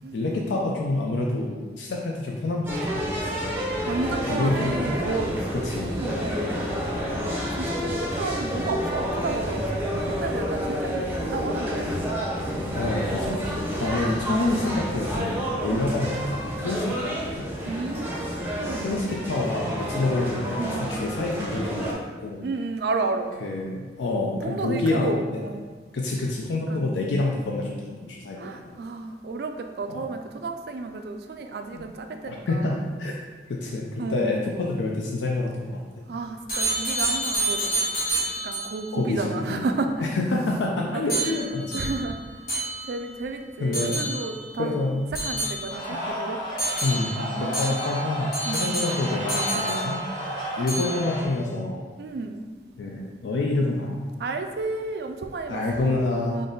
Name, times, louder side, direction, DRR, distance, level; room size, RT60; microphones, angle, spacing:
voice 1, 0.1-3.1 3.4-3.5 4.3-4.7 5.6-6.0 12.7-13.5 13.8-17.4 18.8-22.4 23.4-25.1 25.9-28.8 29.9-30.0 31.7-31.8 32.3-33.1 33.5-35.8 38.9-39.6 40.0-41.8 43.6-44.0 44.6-45.1 45.9-46.0 46.8-50.0 50.6-51.9 52.8-54.0 55.5-56.5, left 2 dB, 85° left, -1 dB, 0.4 m, -27 dB
sound 1, 2.7-21.9, equal, 10° right, 0.5 m, -29 dB
voice 2, 3.9-6.6 7.6-11.9 15.7-15.9 17.6-19.0 20.6-21.0 22.4-23.4 24.4-25.6 26.7-26.9 27.2-27.3 28.4-32.8 34.0-34.4 36.1-37.9 38.4-40.2 40.9-42.5 42.8-44.8 45.1-46.4 47.4-47.8 48.5-48.7 50.8-50.9 52.0-52.4 54.2-56.5, right 3 dB, 60° right, 6 dB, 0.3 m, -32 dB
sound 2, 36.5-38.9 41.1-43.2 43.7-44.5 45.1-46.0 46.6-50.3 50.7-51.2, right 2 dB, 55° left, 1.4 m, -29 dB
sound 3, 45.7-51.2, equal, 25° left, 0.9 m, -32 dB
3.6 x 2.5 x 3.8 m, 1.4 s
head